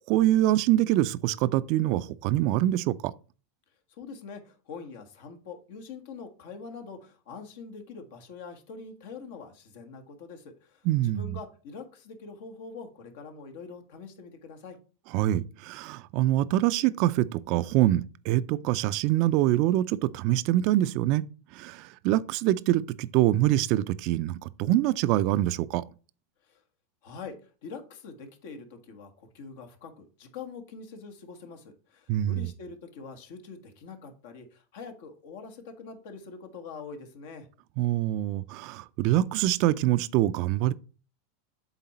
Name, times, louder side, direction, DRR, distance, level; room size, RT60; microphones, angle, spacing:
voice 1, 0.1-3.1 10.8-11.4 15.1-21.2 21.5-25.8 32.1-32.5 37.8-40.7, right 14 dB, 55° right, 0.4 m, -25 dB
voice 2, 3.9-14.8 26.4-26.6 27.0-37.5, left 5 dB, 70° left, 1.5 m, -44 dB
8.0 x 3.8 x 4.2 m
hypercardioid pair, 110°, 0 cm